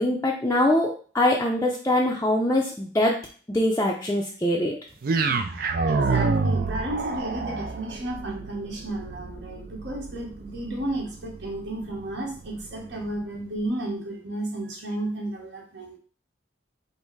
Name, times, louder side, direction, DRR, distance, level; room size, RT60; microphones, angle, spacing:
voice 1, 0.0-3.2 3.5-4.8, left 1 dB, 15° left, -2 dB, 0.5 m, -23 dB
sound 1, 5.0-13.2, right 4 dB, 50° right, 0.4 m, -29 dB
voice 2, 5.5-16.0, right 1 dB, 75° right, -2 dB, 1.4 m, -33 dB
5.4 x 2.1 x 4.6 m, 0.42 s
head